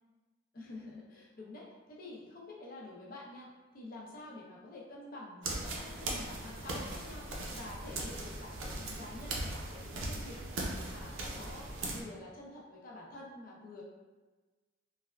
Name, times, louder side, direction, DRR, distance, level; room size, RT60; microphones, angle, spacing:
voice 1, 0.5-13.8, left 2 dB, 50° left, -4 dB, 0.6 m, -48 dB
sound 1, 5.4-12.0, right 2 dB, 75° right, 0.5 m, -39 dB
3.3 x 2.3 x 2.2 m, 1.2 s
head